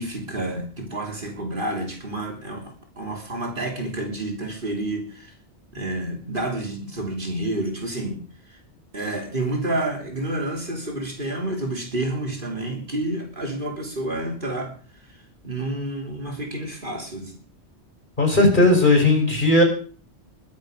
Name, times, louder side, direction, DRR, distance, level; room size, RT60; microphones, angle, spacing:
voice 1, 0.0-5.3 5.7-8.2 8.5-8.6 8.9-14.7 15.1-15.2 15.4-17.4, right 1 dB, 50° right, 1 dB, 3.7 m, -29 dB
voice 2, 18.2-19.6, left 2 dB, 45° left, 2 dB, 5.3 m, -16 dB
22.0 x 8.4 x 5.3 m, 0.41 s
omnidirectional pair, 1.1 m